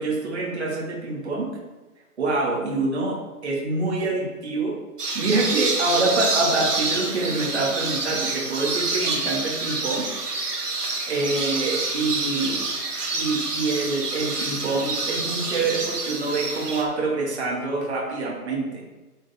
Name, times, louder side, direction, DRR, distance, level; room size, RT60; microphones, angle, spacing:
voice 1, 0.0-1.5 2.2-4.7 5.1-10.1 11.1-12.7 13.1-18.8, right 3 dB, 45° right, -3 dB, 2.5 m, -26 dB
sound 1, 5.0-16.8, right 3 dB, 80° right, 2.2 m, -27 dB
8.6 x 7.3 x 3.7 m, 1.2 s
hypercardioid pair, 175°, 46 cm